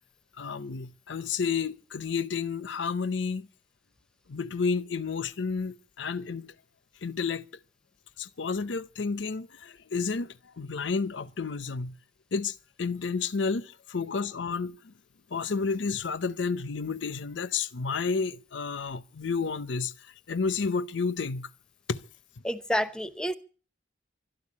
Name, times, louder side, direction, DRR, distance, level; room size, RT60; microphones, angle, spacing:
voice 1, 0.4-3.5 4.3-6.5 7.0-7.5 8.2-12.0 12.3-14.9 15.3-19.9 20.3-21.5 21.9-22.0, left 5 dB, 75° left, 0.6 m, -31 dB
voice 2, 22.4-23.3, equal, 5° left, 0.7 m, -29 dB
12.5 x 11.5 x 8.4 m
head